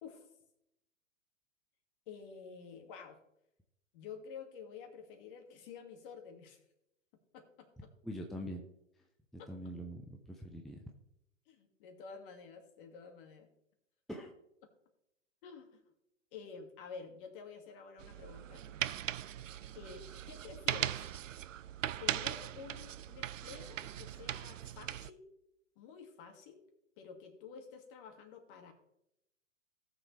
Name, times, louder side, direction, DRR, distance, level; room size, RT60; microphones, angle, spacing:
voice 1, 0.0-0.3 2.1-3.2 3.9-6.6 7.3-7.7 11.5-13.5 15.4-15.8 16.3-18.8 19.7-21.1 22.0-25.2 25.8-26.6 27.0-28.7, left 6 dB, 45° left, 5 dB, 2.3 m, -50 dB
voice 2, 8.0-8.7 9.3-10.9 14.1-14.3, equal, ahead, 2 dB, 0.6 m, -43 dB
sound 1, 18.0-25.1, right 11 dB, 75° right, 0.6 m, -39 dB
17.5 x 6.9 x 3.3 m, 0.82 s
figure-of-eight pair, 115°, 39 cm